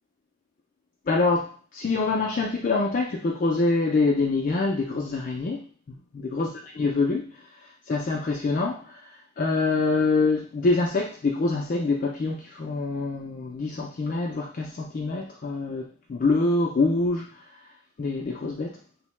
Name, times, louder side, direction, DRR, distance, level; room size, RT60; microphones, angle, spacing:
voice 1, 1.1-5.6 6.1-6.5 6.7-7.2 7.9-9.0 9.4-17.3 18.0-18.8, left 3 dB, 40° left, -1 dB, 0.3 m, -25 dB
2.7 x 2.1 x 3.0 m, 0.39 s
head